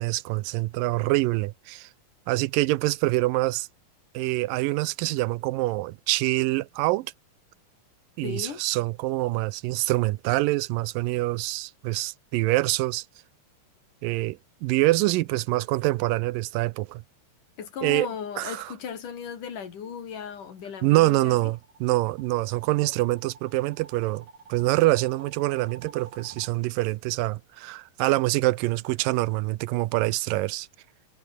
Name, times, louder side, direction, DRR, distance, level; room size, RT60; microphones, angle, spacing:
voice 1, 0.0-1.9 2.3-3.7 4.1-7.1 8.2-13.1 14.0-17.0 17.8-18.1 18.4-18.7 20.8-30.7, right 19 dB, 90° right, 2.3 m, -25 dB
voice 2, 8.2-8.6 17.6-21.5, left 7 dB, 65° left, 4.4 m, -36 dB
sound 1, 20.5-26.5, right 4 dB, 70° right, 7.3 m, -51 dB
omnidirectional pair, 3.9 m